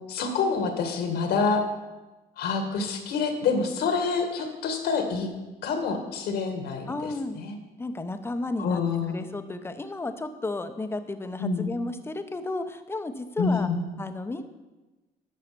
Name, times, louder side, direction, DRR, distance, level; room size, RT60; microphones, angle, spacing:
voice 1, 0.0-1.6 2.4-5.3 5.6-6.9 7.3-7.5 8.6-9.2 11.4-11.7 13.4-13.8, left 5 dB, 70° left, 5 dB, 1.8 m, -27 dB
voice 2, 6.9-7.4 7.8-8.8 9.1-13.7 14.0-14.4, left 2 dB, 15° left, 9 dB, 0.8 m, -33 dB
11.5 x 4.9 x 6.8 m, 1.1 s
cardioid pair, 110°, 17 cm